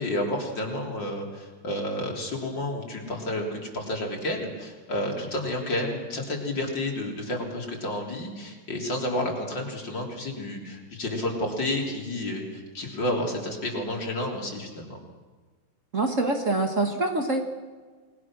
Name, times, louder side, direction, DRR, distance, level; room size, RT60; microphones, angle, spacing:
voice 1, 0.0-15.0, left 1 dB, 55° left, 0 dB, 4.4 m, -30 dB
voice 2, 15.9-17.4, right 2 dB, 40° right, 3 dB, 2.0 m, -25 dB
29.0 x 20.5 x 6.3 m, 1.4 s
omnidirectional pair, 2.3 m